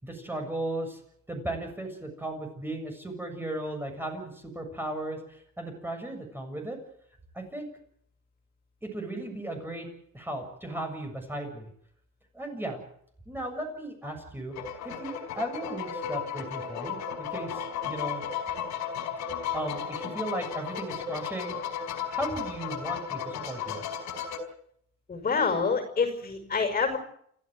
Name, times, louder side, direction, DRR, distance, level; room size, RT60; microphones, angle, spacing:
voice 1, 0.0-1.0 1.3-6.8 7.3-7.7 8.8-9.9 10.1-11.7 12.3-12.8 13.3-14.5 14.8-18.2 19.5-21.6 22.1-23.8, right 1 dB, 5° right, 3 dB, 7.2 m, -36 dB
sound 1, 14.5-24.4, left 7 dB, 75° left, 5.2 m, -34 dB
voice 2, 25.1-27.0, left 5 dB, 30° left, 6 dB, 5.8 m, -27 dB
29.0 x 15.5 x 7.9 m, 0.68 s
cardioid pair, 130°, 29 cm